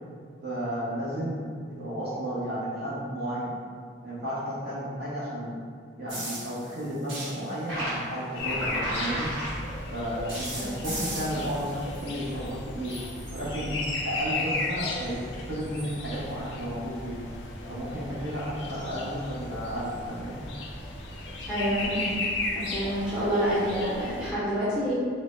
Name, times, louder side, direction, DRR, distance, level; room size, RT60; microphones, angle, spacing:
voice 1, 0.4-3.6 4.0-5.6 6.0-9.3 9.9-12.9 13.3-13.7 14.0-15.2 15.5-17.3 17.7-20.4, equal, 50° right, -9 dB, 0.9 m, -33 dB
sound 1, 6.1-9.9 10.3-12.6 12.8-15.2 15.6-16.0 18.7-19.0 19.8-19.9, right 1 dB, 90° right, 1.0 m, -37 dB
sound 2, 8.3-24.3, left 2 dB, 65° left, 0.4 m, -35 dB
voice 2, 21.5-22.2 22.5-24.9, equal, 5° right, -12 dB, 0.6 m, -28 dB
3.9 x 2.1 x 2.5 m, 2.1 s
head